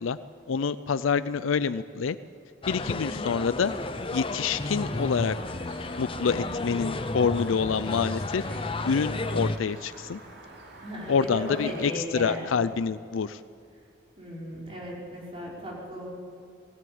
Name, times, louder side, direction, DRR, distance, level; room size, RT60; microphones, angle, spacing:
voice 1, 0.5-2.2 2.7-3.7 4.1-5.4 6.0-8.4 8.8-10.2 11.1-13.4, left 5 dB, 80° left, 13 dB, 0.5 m, -27 dB
sound 1, 2.6-9.6, left 2 dB, 25° left, 0.6 m, -32 dB
voice 2, 2.8-3.2 6.3-6.7 10.8-12.7 14.2-16.1, equal, 30° right, -4 dB, 5.3 m, -36 dB
sound 2, 3.6-11.9, right 2 dB, 55° right, 3.3 m, -47 dB
19.0 x 17.5 x 8.7 m, 2.4 s
head